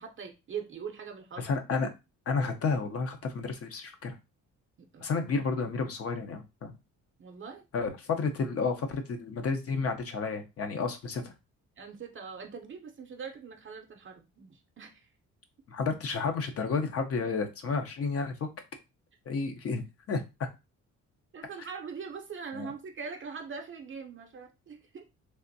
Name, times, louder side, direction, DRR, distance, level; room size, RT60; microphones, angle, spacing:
voice 1, 0.0-1.5 4.9-5.1 7.2-7.6 11.8-15.1 21.3-25.1, right 6 dB, 40° right, 0.6 m, -42 dB
voice 2, 1.4-1.9 2.3-4.1 5.0-6.7 7.7-11.3 15.7-18.5 19.3-19.8 20.1-20.5 21.6-21.7 22.5-22.7, left 4 dB, 50° left, 0.7 m, -31 dB
3.4 x 2.5 x 2.6 m
cardioid pair, 90°, 30 cm